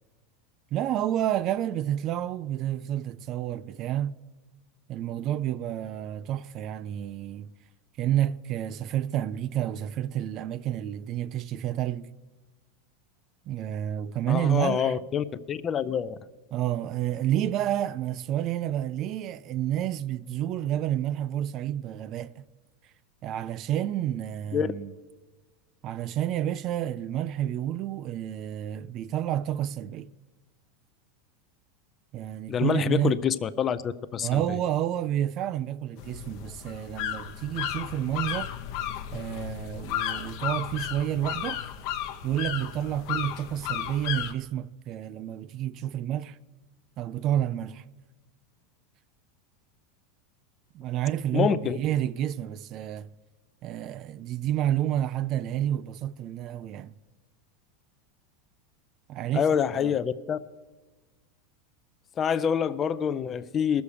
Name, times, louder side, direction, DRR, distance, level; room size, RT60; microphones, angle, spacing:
voice 1, 0.7-4.2 4.9-7.5 8.0-12.1 13.5-15.0 16.5-22.4 23.2-24.9 25.8-30.1 32.1-33.2 34.2-38.5 39.1-41.6 42.2-46.4 47.0-47.8 50.7-53.1 53.6-56.9 59.1-59.5 59.7-60.0, right 11 dB, 40° right, 0.3 m, -29 dB
voice 2, 14.3-16.2 24.5-24.7 32.5-34.4 51.3-51.8 59.3-60.4 62.2-63.8, left 8 dB, 25° left, 0.4 m, -26 dB
sound 1, 36.0-44.3, left 10 dB, 55° left, 0.8 m, -34 dB
19.5 x 7.0 x 4.9 m
supercardioid pair, 135°, 0 cm